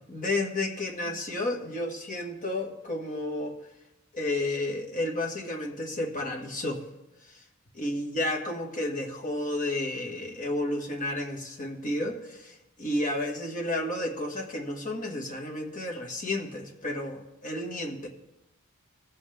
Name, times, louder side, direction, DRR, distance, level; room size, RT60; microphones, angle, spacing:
voice 1, 0.1-3.6 4.1-6.8 7.8-18.1, left 1 dB, 40° left, 1 dB, 1.7 m, -31 dB
20.0 x 7.8 x 3.5 m, 0.93 s
head